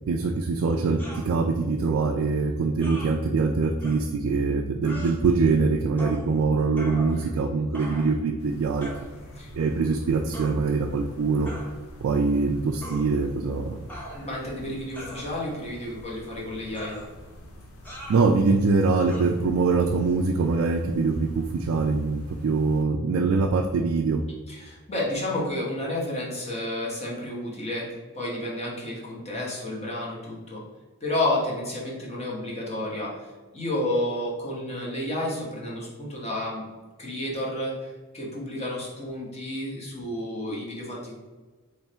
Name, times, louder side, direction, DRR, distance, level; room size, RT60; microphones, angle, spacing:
voice 1, 0.1-8.9 9.5-11.5 12.0-13.8 18.1-24.2, right 4 dB, 65° right, 3 dB, 0.4 m, -23 dB
sound 1, 1.0-1.3 2.8-3.1 3.8-4.0 4.8-5.2 6.0-6.2 6.8-7.4 7.7-8.2 8.8-9.1 10.3-10.5 11.5-11.7 12.8-13.1 13.9-14.4 14.9-15.6 16.7-17.1 17.8-18.2 19.1-19.2, right 1 dB, 10° left, 1.0 m, -40 dB
sound 2, 8.4-22.8, equal, 75° left, 0.7 m, -46 dB
voice 2, 14.1-17.0 24.5-27.9 28.1-30.6 31.0-33.3 33.5-36.6 37.0-41.1, left 1 dB, 30° left, -4 dB, 1.2 m, -31 dB
3.4 x 3.2 x 4.3 m, 1.3 s
head